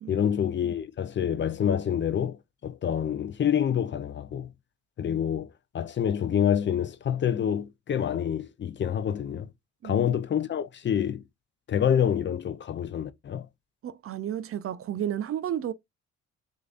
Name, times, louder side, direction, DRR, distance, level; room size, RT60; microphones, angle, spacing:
voice 1, 0.1-2.4 2.6-4.5 5.0-5.5 5.7-9.5 9.8-11.2 11.7-13.5, left 9 dB, 40° left, 0.5 m, -27 dB
voice 2, 13.8-15.7, right 10 dB, 50° right, 0.5 m, -32 dB
6.5 x 2.6 x 2.4 m
cardioid pair, 90°, 30 cm